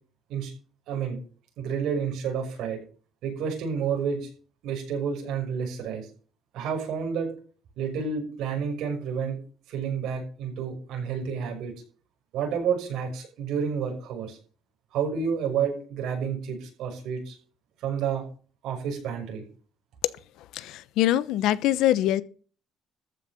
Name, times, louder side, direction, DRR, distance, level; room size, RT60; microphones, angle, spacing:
voice 1, 0.9-1.2 1.6-2.8 3.2-4.3 4.6-6.1 6.5-7.3 7.8-9.4 9.7-11.7 12.3-14.4 14.9-17.4 17.8-18.2 18.6-19.4, right 6 dB, 70° right, 5.8 m, -30 dB
voice 2, 20.5-22.2, left 13 dB, 80° left, 0.9 m, -23 dB
14.0 x 6.5 x 6.6 m
cardioid pair, 165°, 0 cm